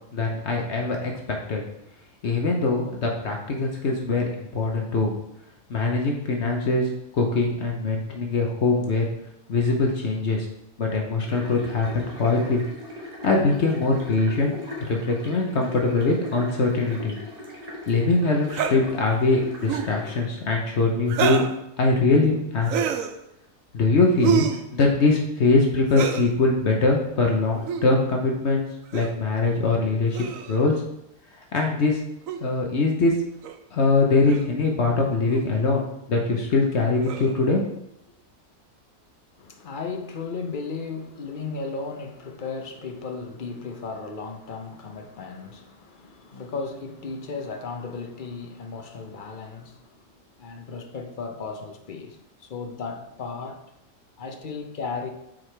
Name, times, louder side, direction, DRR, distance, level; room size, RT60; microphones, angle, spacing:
voice 1, 0.1-1.6 2.2-5.1 5.7-9.1 9.5-10.5 10.8-12.6 13.2-14.5 14.9-17.1 17.9-21.4 21.8-22.9 23.7-24.5 24.7-28.7 28.9-30.7 31.5-32.0 32.4-33.1 33.7-37.6, left 3 dB, 60° left, 1.1 m, -22 dB
sound 1, 11.2-20.2, left 1 dB, 30° right, 1.5 m, -39 dB
sound 2, 18.5-18.8 19.6-19.9 21.1-21.5 22.6-23.1 24.2-24.6 25.9-26.3 27.6-27.8 28.9-29.2 30.1-30.6 32.3-32.4 33.4-33.6 34.3-34.5 35.3-35.5 37.0-37.4, right 8 dB, 85° right, 1.0 m, -27 dB
voice 2, 39.4-50.1 50.4-53.6 54.2-55.1, left 4 dB, 45° left, 0.8 m, -35 dB
7.6 x 4.7 x 3.3 m
omnidirectional pair, 1.3 m